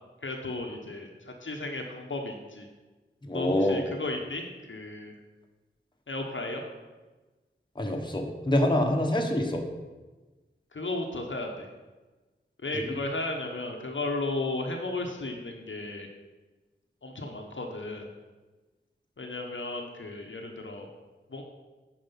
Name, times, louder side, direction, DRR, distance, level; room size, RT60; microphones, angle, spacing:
voice 1, 0.2-2.7 3.3-5.1 6.1-6.6 10.7-11.7 12.6-16.1 17.0-18.1 19.2-20.9 21.3-21.4, left 2 dB, 65° left, 2 dB, 1.0 m, -34 dB
voice 2, 3.2-3.8 7.7-9.6 12.7-13.0, left 1 dB, 20° left, 1 dB, 1.2 m, -26 dB
8.9 x 4.8 x 5.6 m, 1.2 s
wide cardioid pair, 55°, 21 cm